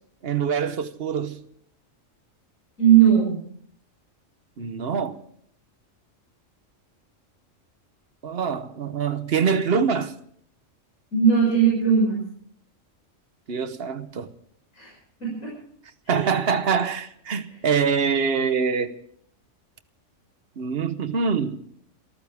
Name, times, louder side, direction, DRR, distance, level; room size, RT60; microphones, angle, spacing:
voice 1, 0.2-1.4 4.6-5.2 8.2-10.1 13.5-14.3 16.1-18.9 20.6-21.6, right 6 dB, 50° right, 1.1 m, -24 dB
voice 2, 2.8-3.4 11.1-12.2 14.7-14.9 15.2-15.5 16.1-16.3, right 8 dB, 75° left, 6.5 m, -19 dB
27.5 x 14.5 x 3.5 m
omnidirectional pair, 1.3 m